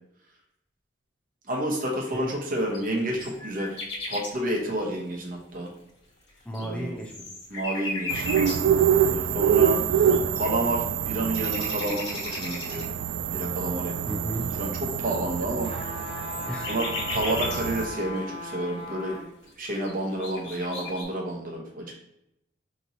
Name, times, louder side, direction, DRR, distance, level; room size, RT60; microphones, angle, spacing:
voice 1, 1.5-3.8 4.1-5.7 6.6-7.0 7.5-8.6 9.0-9.8 10.4-12.9 13.3-13.9 14.6-15.7 16.7-19.1 19.6-22.0, right 1 dB, 50° right, 1 dB, 0.9 m, -30 dB
sound 1, 2.7-4.3 5.6-5.7 6.3-8.8 9.8-9.9 10.1-10.8 11.2-12.9 13.6-13.7 14.3-17.6 18.8-18.9 19.4-19.5 19.8-21.0, left 3 dB, 75° left, 1.2 m, -36 dB
voice 2, 6.5-7.1 9.6-10.2 14.1-14.5 16.4-16.7, right 1 dB, 5° left, -1 dB, 0.5 m, -35 dB
sound 2, 8.1-17.9, right 8 dB, 85° right, 0.3 m, -26 dB
sound 3, 15.6-19.3 19.8-19.9, left 2 dB, 30° left, 0.9 m, -37 dB
5.3 x 3.0 x 2.7 m, 0.83 s
head